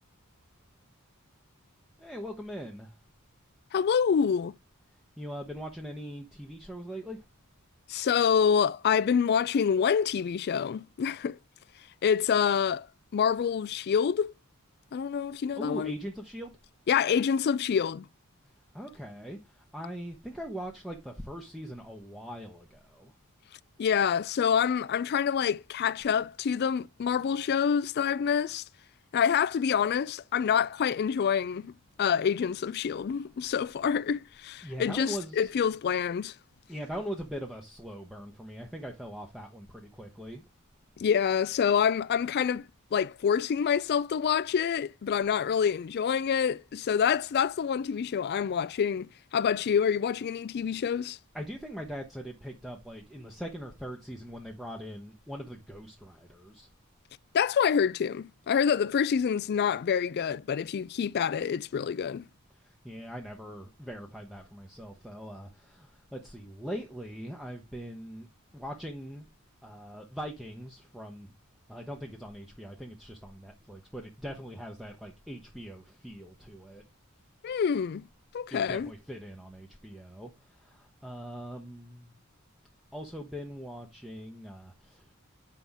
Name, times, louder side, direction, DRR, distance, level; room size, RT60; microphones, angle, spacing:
voice 1, 2.0-2.9 5.2-7.2 15.6-16.5 18.7-23.1 34.6-35.5 36.7-40.4 51.3-56.7 62.6-68.3 68.5-69.3 69.6-71.3 71.7-76.8 78.5-82.1 82.9-85.1, equal, ahead, 0.8 m, -41 dB
voice 2, 3.7-4.5 7.9-11.4 12.0-12.9 13.1-14.3 14.9-15.9 16.9-18.1 23.8-28.6 29.1-31.7 32.0-36.3 41.0-51.2 57.3-62.3 77.4-78.0 78.3-78.9, left 7 dB, 50° left, 0.3 m, -27 dB
7.4 x 5.6 x 3.5 m
head